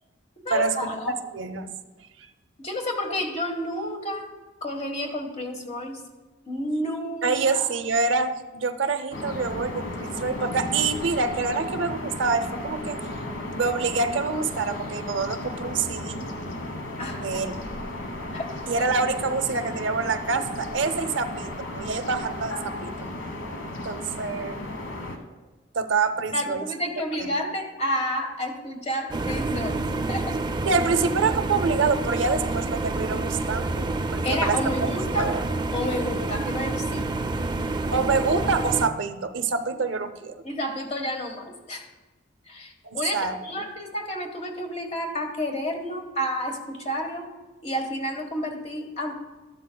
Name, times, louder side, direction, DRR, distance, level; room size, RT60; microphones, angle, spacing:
voice 1, 0.4-1.2 2.6-4.3 4.6-6.0 6.4-7.6 17.0-17.6 18.3-18.5 26.3-30.4 34.2-35.4 35.7-37.0 40.4-41.9 42.5-47.3 47.6-49.1, equal, 35° left, 3 dB, 1.3 m, -30 dB
voice 2, 1.1-1.7 2.2-2.3 7.2-13.0 13.5-16.2 17.2-17.6 18.7-22.9 23.8-24.7 25.7-26.6 27.2-27.3 30.7-33.8 34.1-35.4 37.9-40.3 42.8-43.4, right 4 dB, 75° right, 9 dB, 0.6 m, -26 dB
sound 1, 9.1-25.2, left 1 dB, 80° left, 1.2 m, -34 dB
sound 2, 29.1-38.9, right 2 dB, 25° right, 0.4 m, -28 dB
13.0 x 11.5 x 2.2 m, 1.2 s
head